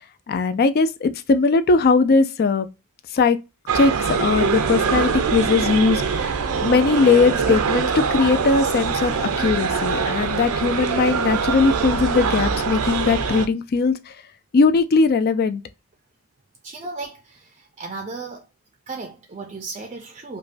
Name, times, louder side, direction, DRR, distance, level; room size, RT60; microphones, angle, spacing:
voice 1, 0.3-2.7 3.1-3.4 3.7-6.3 6.6-14.1 14.5-15.6, left 4 dB, 45° left, 0.4 m, -19 dB
sound 1, 3.7-13.5, right 5 dB, 85° right, 0.5 m, -23 dB
voice 2, 16.6-18.5 18.9-20.4, right 3 dB, 30° right, 0.5 m, -35 dB
5.1 x 2.2 x 2.5 m
head